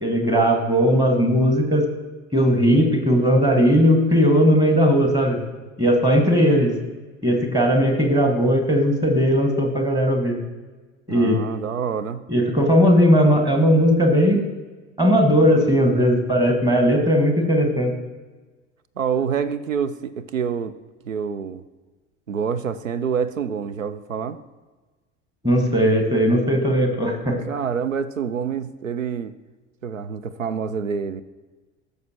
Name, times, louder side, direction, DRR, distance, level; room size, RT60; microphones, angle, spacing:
voice 1, 0.0-1.9 2.3-5.4 5.8-6.7 7.2-10.4 11.1-11.4 12.3-14.4 15.0-17.9 25.4-27.4, equal, 10° right, 3 dB, 1.6 m, -18 dB
voice 2, 11.1-12.2 19.0-20.7 21.1-21.6 22.3-24.4 27.3-29.3 29.8-31.2, right 7 dB, 85° right, 15 dB, 0.5 m, -27 dB
15.5 x 6.5 x 3.0 m, 1.3 s
figure-of-eight pair, 70°, 38 cm